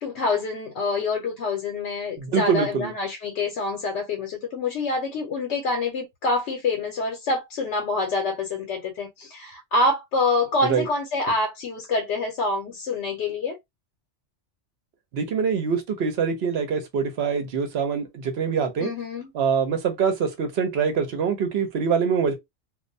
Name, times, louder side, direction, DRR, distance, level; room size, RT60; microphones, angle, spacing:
voice 1, 0.0-13.6 18.8-19.3, left 3 dB, 75° left, 0.9 m, -26 dB
voice 2, 2.2-2.9 10.6-10.8 15.1-18.9 19.3-22.3, right 6 dB, 65° right, 0.9 m, -24 dB
2.3 x 2.1 x 2.5 m
omnidirectional pair, 1.2 m